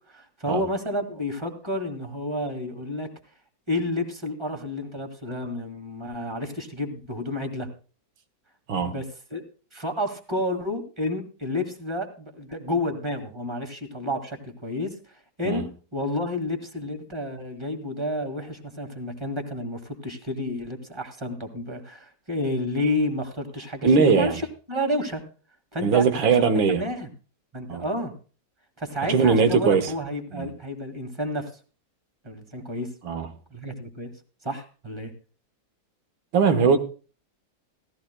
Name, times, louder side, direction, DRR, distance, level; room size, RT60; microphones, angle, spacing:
voice 1, 0.1-3.1 3.7-7.7 8.7-9.1 9.3-9.4 9.7-14.9 15.4-24.4 24.7-25.2 25.7-27.1 27.5-28.1 28.8-31.5 32.2-32.9 33.5-34.1 34.4-35.1, left 1 dB, 15° right, 1.8 m, -30 dB
voice 2, 23.8-24.4 25.8-26.8 27.7-27.9 29.1-29.9 30.3-30.5 33.0-33.3 36.3-36.8, right 5 dB, 85° right, 2.0 m, -20 dB
17.5 x 13.5 x 2.2 m
omnidirectional pair, 2.1 m